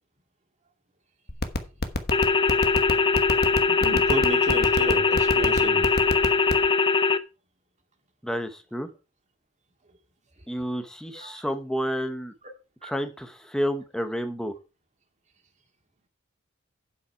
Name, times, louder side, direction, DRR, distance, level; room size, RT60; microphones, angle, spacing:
sound 1, 1.3-6.7, left 2 dB, 50° left, 1.2 m, -25 dB
sound 2, 2.1-7.2, left 4 dB, 25° left, 0.6 m, -21 dB
voice 1, 3.8-5.8 11.1-11.4 12.8-12.9, right 1 dB, 35° right, 2.2 m, -31 dB
voice 2, 8.2-8.9 10.5-12.3 12.8-14.5, equal, 5° left, 1.0 m, -30 dB
8.6 x 7.8 x 4.6 m
head